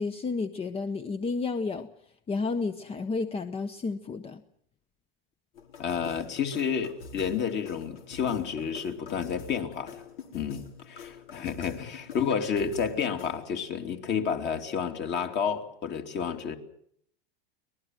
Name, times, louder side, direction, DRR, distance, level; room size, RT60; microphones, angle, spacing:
voice 1, 0.0-1.9 2.3-4.4, left 4 dB, 20° left, 11 dB, 0.9 m, -31 dB
sound 1, 5.6-13.5, left 4 dB, 75° left, 4.6 m, -46 dB
voice 2, 5.8-10.0 10.3-16.6, left 7 dB, 35° left, 5 dB, 2.9 m, -30 dB
23.5 x 20.0 x 7.7 m, 0.68 s
supercardioid pair, 125°, 29 cm